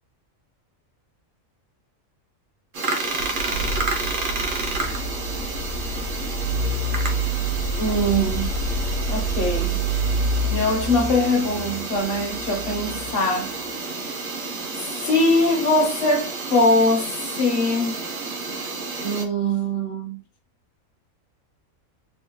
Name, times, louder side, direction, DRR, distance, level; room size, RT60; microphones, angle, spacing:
sound 1, 2.7-19.2, right 3 dB, 55° right, 0.6 m, -30 dB
sound 2, 3.0-13.8, right 2 dB, 75° left, 1.1 m, -28 dB
voice 1, 7.8-8.6 9.1-9.8 10.5-13.5 14.8-18.0 19.0-20.2, left 1 dB, 50° left, 0.8 m, -22 dB
3.4 x 2.1 x 2.9 m
omnidirectional pair, 1.4 m